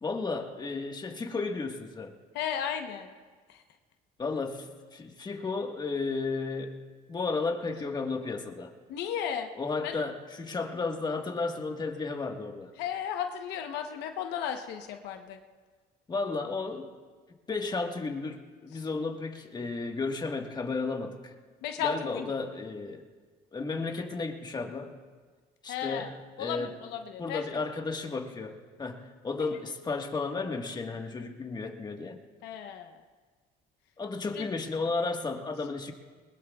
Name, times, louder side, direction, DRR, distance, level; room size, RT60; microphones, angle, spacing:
voice 1, 0.0-2.1 4.2-8.7 9.5-12.7 16.1-16.9 17.5-21.3 21.8-23.0 23.5-25.0 25.6-26.7 27.2-32.2 34.0-35.9, left 3 dB, 25° left, 3 dB, 1.5 m, -33 dB
voice 2, 2.3-3.1 3.5-3.6 8.9-9.5 9.8-10.0 12.8-15.4 18.7-18.8 21.6-22.3 25.7-26.1 26.4-27.4 29.4-29.5 32.4-32.9 34.3-34.4, left 9 dB, 90° left, 5 dB, 1.0 m, -34 dB
21.5 x 21.0 x 2.4 m, 1.5 s
cardioid pair, 110°, 17 cm